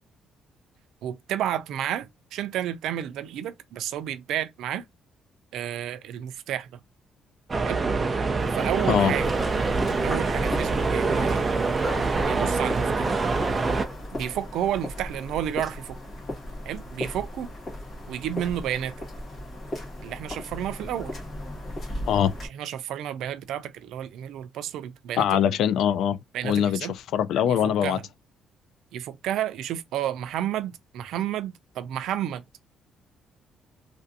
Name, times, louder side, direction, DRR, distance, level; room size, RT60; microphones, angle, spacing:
voice 1, 1.0-4.8 5.5-6.7 7.6-7.8 8.5-9.3 10.0-11.4 12.3-13.2 14.2-16.0 16.7-17.5 18.1-18.9 20.0-21.2 22.5-25.5 26.3-26.9 27.5-28.0 28.9-32.4, right 11 dB, 85° right, 0.4 m, -31 dB
sound 1, 7.5-13.8, right 4 dB, 25° right, 0.4 m, -25 dB
sound 2, 8.4-14.1, right 1 dB, ahead, 1.2 m, -40 dB
sound 3, 9.1-22.5, left 1 dB, 40° left, 1.5 m, -37 dB
voice 2, 25.2-26.2 26.4-28.0, left 9 dB, 75° left, 0.3 m, -23 dB
3.2 x 2.5 x 2.6 m
cardioid pair, 145°, 0 cm